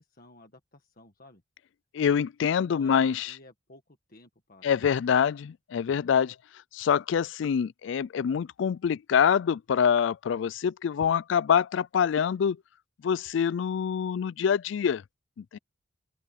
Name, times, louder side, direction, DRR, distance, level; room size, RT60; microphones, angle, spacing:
voice 1, 0.0-1.4 2.6-5.3, left 2 dB, 45° left, 1.7 m, -54 dB
voice 2, 1.9-3.3 4.6-6.4 6.7-12.6 13.0-15.0 15.4-15.6, left 7 dB, 65° left, 0.3 m, -25 dB
open air
head